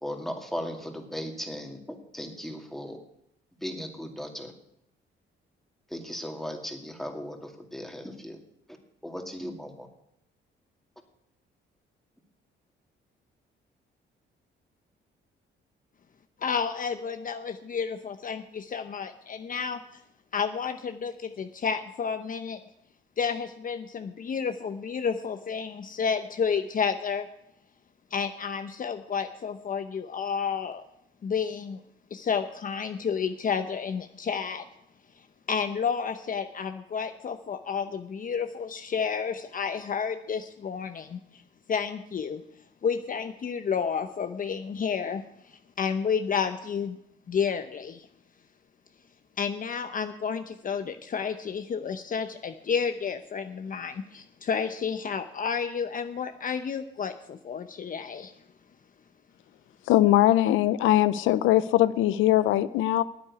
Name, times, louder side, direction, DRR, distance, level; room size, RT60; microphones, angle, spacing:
voice 1, 0.0-1.8 2.1-3.0 3.6-4.5 5.9-8.4 9.0-9.9, equal, ahead, 3 dB, 2.3 m, -37 dB
voice 2, 16.4-20.0 20.3-22.6 23.2-27.3 28.1-30.8 31.2-31.8 32.1-34.7 35.2-41.4 41.7-42.4 42.8-47.0 47.3-48.1 49.4-58.3, left 6 dB, 45° left, 8 dB, 0.7 m, -31 dB
voice 3, 59.9-63.0, left 14 dB, 90° left, 15 dB, 0.5 m, -21 dB
9.6 x 8.8 x 9.6 m, 0.77 s
cardioid pair, 90°, 20 cm